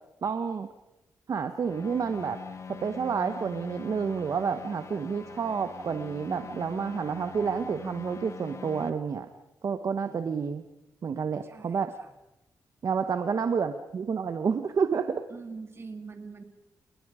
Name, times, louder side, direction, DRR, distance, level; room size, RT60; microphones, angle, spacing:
voice 1, 0.2-0.7 1.3-2.4 2.7-9.3 9.6-10.7 11.0-11.9 12.8-15.2, right 6 dB, 55° right, 8 dB, 1.2 m, -29 dB
sound 1, 1.6-8.9, left 5 dB, 45° left, 1.6 m, -43 dB
voice 2, 10.1-10.4 11.4-12.1 15.3-16.4, right 4 dB, 40° right, 6 dB, 2.8 m, -44 dB
29.5 x 20.0 x 5.0 m, 0.94 s
cardioid pair, 100°, 7 cm